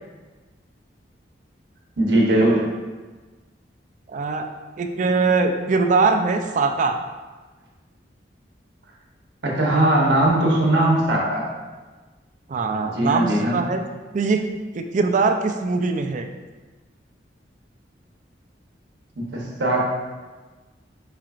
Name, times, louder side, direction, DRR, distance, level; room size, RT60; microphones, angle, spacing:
voice 1, 2.0-2.7 9.4-11.5 12.9-13.6 19.2-19.9, right 1 dB, 75° right, -2 dB, 1.0 m, -19 dB
voice 2, 4.1-4.5 4.8-7.0 9.7-9.9 12.5-13.8 14.1-14.4 14.7-16.3, right 4 dB, 45° right, 6 dB, 0.4 m, -22 dB
4.9 x 4.4 x 2.4 m, 1.3 s
head